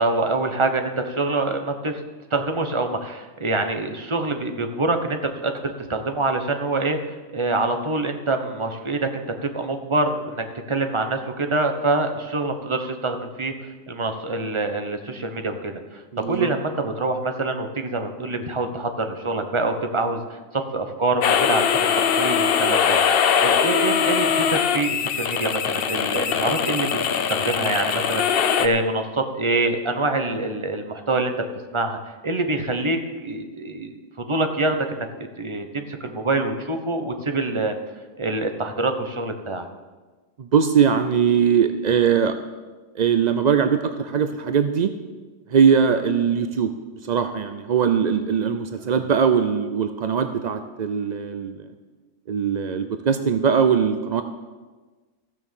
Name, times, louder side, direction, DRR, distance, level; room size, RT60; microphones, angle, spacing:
voice 1, 0.0-2.0 2.3-7.0 7.3-13.5 13.9-23.0 23.4-31.3 31.7-32.0 32.2-35.1 35.4-37.8 38.2-39.7 48.8-48.9, right 2 dB, 25° right, 6 dB, 1.0 m, -25 dB
voice 2, 16.1-16.5 40.4-42.4 42.9-44.9 45.5-46.7 47.0-51.6 52.3-54.2, right 7 dB, 60° right, 8 dB, 0.4 m, -21 dB
sound 1, 21.2-28.7, left 7 dB, 55° left, 0.7 m, -21 dB
15.0 x 6.4 x 7.2 m, 1.3 s
omnidirectional pair, 1.4 m